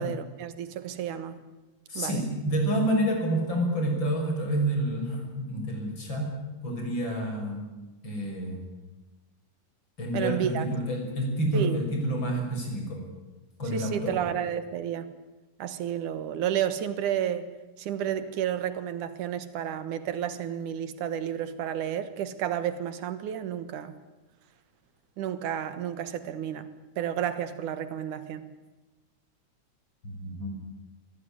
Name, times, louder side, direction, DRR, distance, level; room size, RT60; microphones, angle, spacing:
voice 1, 0.0-1.4 1.9-2.2 10.1-10.7 11.5-11.8 13.7-15.2 15.6-17.5 17.8-24.0 25.2-28.5, right 9 dB, 85° right, 12 dB, 3.0 m, -31 dB
voice 2, 1.9-6.4 6.6-7.7 8.0-8.6 10.0-13.0 13.6-14.1 30.0-30.6, right 1 dB, 35° left, 2 dB, 6.5 m, -28 dB
24.5 x 17.5 x 9.8 m, 1.1 s
omnidirectional pair, 3.4 m